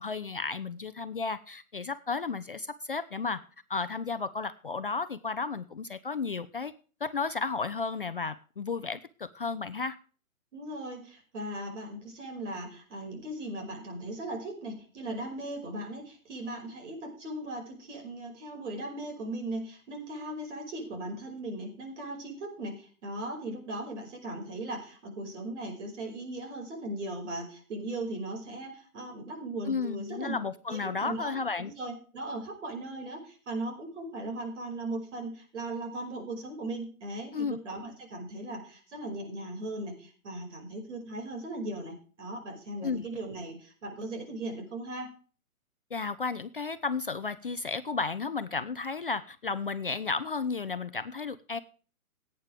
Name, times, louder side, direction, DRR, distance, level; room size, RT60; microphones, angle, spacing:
voice 1, 0.0-3.4 3.7-6.7 7.0-10.0 29.7-31.7 37.3-37.6 42.8-43.1 45.9-51.6, left 4 dB, 40° left, 12 dB, 0.4 m, -33 dB
voice 2, 10.5-30.3 30.7-45.1, right 2 dB, 55° right, 2 dB, 5.5 m, -38 dB
17.5 x 9.0 x 3.4 m, 0.39 s
hypercardioid pair, 160°, 43 cm